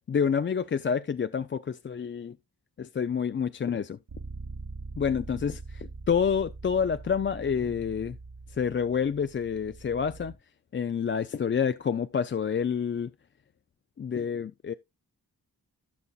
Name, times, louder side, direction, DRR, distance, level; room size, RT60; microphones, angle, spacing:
voice 1, 0.1-2.4 2.8-4.0 5.0-8.2 8.6-10.3 10.7-13.1 14.0-14.7, left 7 dB, 30° left, 0.4 m, -28 dB
Bass guitar, 4.1-10.3, right 3 dB, 70° right, 1.7 m, -43 dB
15.0 x 5.5 x 2.3 m
cardioid pair, 40°, 40 cm